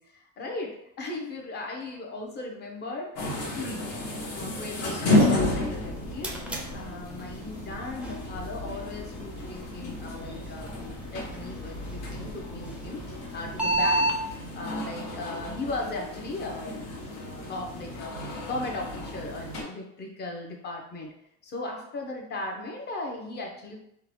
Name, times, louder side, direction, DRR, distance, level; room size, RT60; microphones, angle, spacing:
voice 1, 0.0-3.1 3.5-3.9 4.3-6.4 6.7-14.1 14.6-21.1 21.4-23.8, left 2 dB, 35° left, 1 dB, 0.7 m, -37 dB
sound 1, 3.1-19.6, left 1 dB, 55° left, 1.1 m, -32 dB
sound 2, 5.9-14.2, right 1 dB, 5° right, 0.4 m, -34 dB
3.7 x 2.2 x 3.0 m, 0.75 s
cardioid pair, 140°, 31 cm